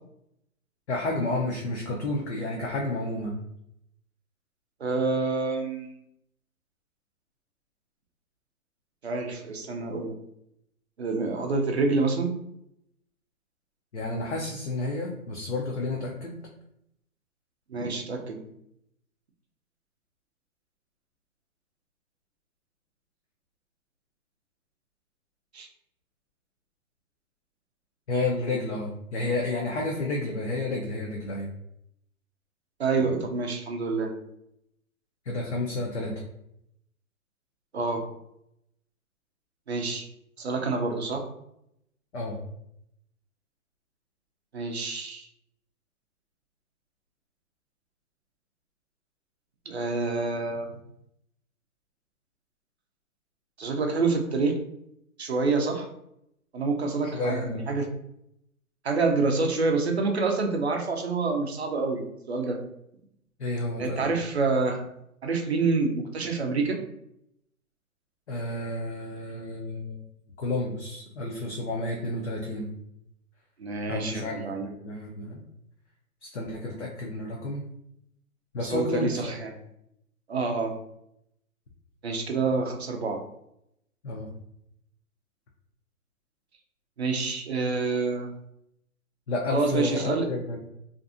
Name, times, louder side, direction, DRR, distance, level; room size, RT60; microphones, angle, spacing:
voice 1, 0.9-3.4 13.9-16.4 28.1-31.5 35.3-36.1 42.1-42.4 57.1-57.6 63.4-64.1 68.3-70.0 70.4-72.7 73.9-75.4 76.2-77.6 78.5-79.3 84.0-84.3 89.3-90.6, left 2 dB, 50° left, -2 dB, 0.5 m, -31 dB
voice 2, 4.8-5.9 9.0-10.1 11.0-12.3 17.7-18.4 25.5-25.7 32.8-34.1 37.7-38.0 39.7-40.1 40.4-41.2 44.5-45.3 49.7-50.7 53.6-54.5 55.2-55.9 56.5-57.9 58.8-62.6 63.8-64.9 65.2-66.8 73.6-74.7 78.6-79.5 80.3-80.7 82.0-83.2 87.0-88.3 89.5-90.3, right 3 dB, 50° right, 3 dB, 0.5 m, -27 dB
2.5 x 2.5 x 2.4 m, 0.78 s
hypercardioid pair, 165°, 44 cm